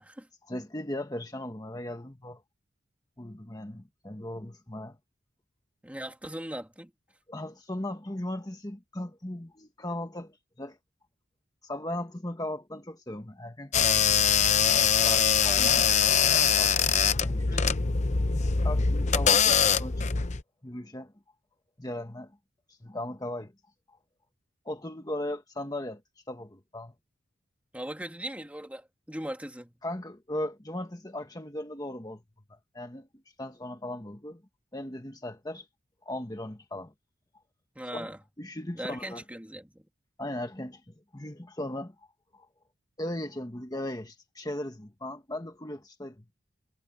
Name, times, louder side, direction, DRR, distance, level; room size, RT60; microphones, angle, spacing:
voice 1, 0.5-2.4 3.2-5.0 7.3-10.8 11.6-14.3 15.0-15.9 16.2-16.9 17.2-17.6 18.6-20.0 20.6-21.1 21.8-22.3 22.7-23.5 23.9-24.0 24.6-26.0 26.3-26.9 29.8-32.2 32.7-33.1 33.4-34.4 34.7-35.7 36.0-36.9 37.9-39.2 40.2-42.1 42.3-42.5 43.0-46.2, left 1 dB, 20° left, 1.3 m, -37 dB
voice 2, 5.8-6.9 27.7-29.7 37.8-38.2 38.7-39.8, right 1 dB, 5° right, 2.5 m, -39 dB
sound 1, 13.7-20.4, left 7 dB, 35° left, 0.7 m, -23 dB
head